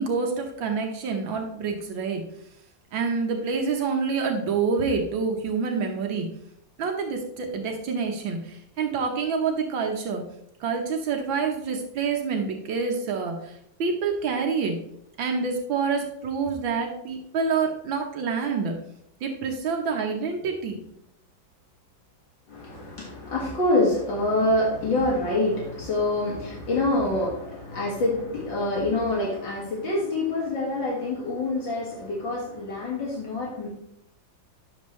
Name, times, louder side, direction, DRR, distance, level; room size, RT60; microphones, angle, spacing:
voice 1, 0.0-2.2 2.9-6.3 6.8-10.2 10.6-14.8 15.2-18.8 19.2-20.8, right 5 dB, 80° right, 2 dB, 1.8 m, -27 dB
voice 2, 22.5-33.7, left 2 dB, 70° left, -3 dB, 2.4 m, -26 dB
9.9 x 7.0 x 3.2 m, 0.74 s
omnidirectional pair, 2.1 m